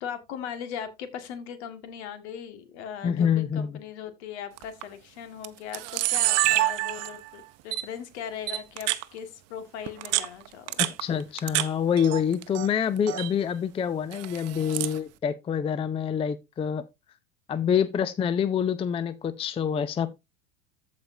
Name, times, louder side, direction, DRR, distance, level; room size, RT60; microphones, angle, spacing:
voice 1, 0.0-10.8, left 8 dB, 60° left, 1.9 m, -39 dB
voice 2, 3.0-3.8 10.8-16.8 17.5-20.2, left 8 dB, 15° left, 0.5 m, -26 dB
Camera, 4.6-4.8 5.4-5.5 5.7-7.3 7.7-7.8 8.5-9.0 9.9-11.7 12.0-12.7 13.0-13.3 14.1-15.0, right 17 dB, 40° right, 0.9 m, -27 dB
14.5 x 5.1 x 2.7 m
figure-of-eight pair, 80°, 38 cm